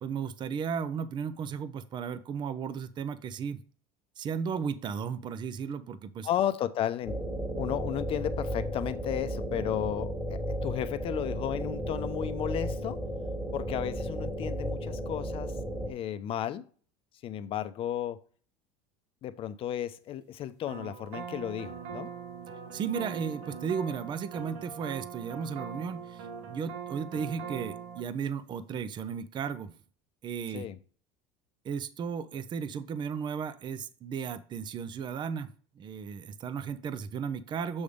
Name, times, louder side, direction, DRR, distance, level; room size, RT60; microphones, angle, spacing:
voice 1, 0.0-3.6 4.2-6.3 22.7-29.7 30.2-30.7 31.6-37.8, right 6 dB, 35° right, 0.6 m, -35 dB
voice 2, 6.2-7.2 7.5-13.0 13.5-15.5 15.8-16.6 17.2-18.2 19.2-22.1 30.5-30.8, left 11 dB, 45° left, 0.6 m, -33 dB
sound 1, 7.0-15.9, equal, 5° right, 1.8 m, -34 dB
sound 2, 20.7-28.0, right 6 dB, 70° right, 1.1 m, -41 dB
7.1 x 3.4 x 5.2 m
supercardioid pair, 105°, 13 cm